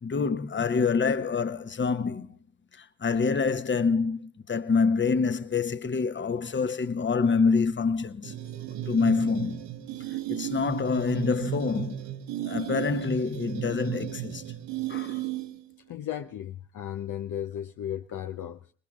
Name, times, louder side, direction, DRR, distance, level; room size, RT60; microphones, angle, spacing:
voice 1, 0.0-2.4 2.7-8.3 8.9-9.6 10.3-12.0 12.4-14.4 14.9-15.2, left 5 dB, 25° left, 1.0 m, -26 dB
sound 1, 8.2-15.7, right 12 dB, 70° right, 1.2 m, -35 dB
voice 2, 14.9-15.4 15.9-18.7, left 10 dB, 45° left, 0.7 m, -36 dB
27.5 x 20.5 x 2.4 m
hypercardioid pair, 55°, 44 cm